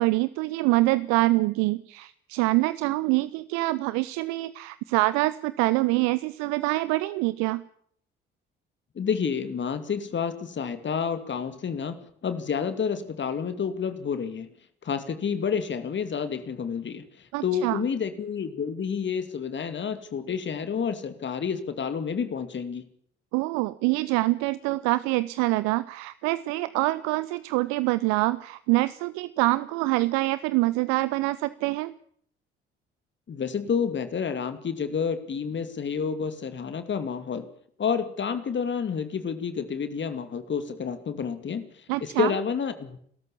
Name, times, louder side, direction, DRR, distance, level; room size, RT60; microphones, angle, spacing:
voice 1, 0.0-7.6 17.3-17.8 23.3-31.9 41.9-42.3, right 20 dB, 65° right, 17 dB, 0.8 m, -25 dB
voice 2, 8.9-14.5 14.8-22.9 33.3-37.5 37.8-43.0, left 6 dB, 40° left, 11 dB, 2.5 m, -29 dB
29.5 x 13.5 x 7.2 m, 0.63 s
figure-of-eight pair, 50°, 30 cm